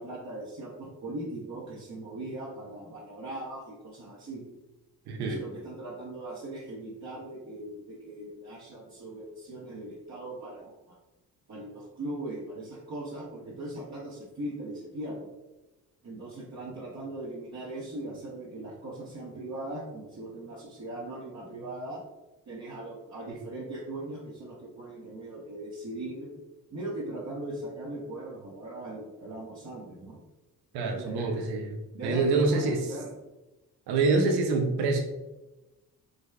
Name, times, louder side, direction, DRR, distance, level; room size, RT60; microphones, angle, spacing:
voice 1, 0.0-4.4 5.1-10.9 11.5-15.3 16.0-22.0 22.5-26.3 26.7-30.2 30.8-31.4 31.9-33.1, right 1 dB, 45° right, -6 dB, 0.9 m, -39 dB
voice 2, 5.1-5.4 30.7-31.8 32.0-32.8 33.9-35.0, right 3 dB, 90° right, 3 dB, 0.6 m, -26 dB
4.9 x 2.3 x 2.2 m, 1.0 s
supercardioid pair, 65°, 38 cm